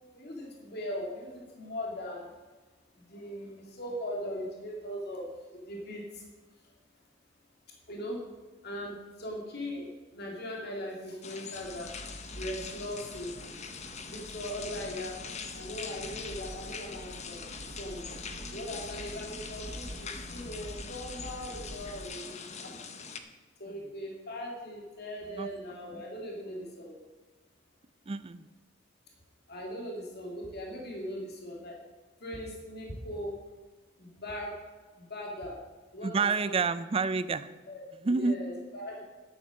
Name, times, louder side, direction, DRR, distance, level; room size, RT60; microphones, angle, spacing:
voice 1, 0.1-2.3 3.1-6.3 7.9-8.2 8.6-11.9 12.3-13.3 14.1-15.2 15.5-18.0 18.5-22.8 23.6-27.0 29.5-31.8 32.2-33.4 34.0-34.5 35.0-35.6 35.9-36.6 37.7-39.0, equal, 55° left, -1 dB, 2.5 m, -39 dB
sound 1, 11.2-23.2, left 5 dB, 35° left, 0.9 m, -43 dB
Accelerating revving vroom, 11.5-22.1, right 1 dB, 60° right, 0.9 m, -47 dB
voice 2, 28.1-28.5 36.0-37.5 38.0-38.4, right 4 dB, 30° right, 15 dB, 0.4 m, -28 dB
11.5 x 8.0 x 6.4 m, 1.3 s
head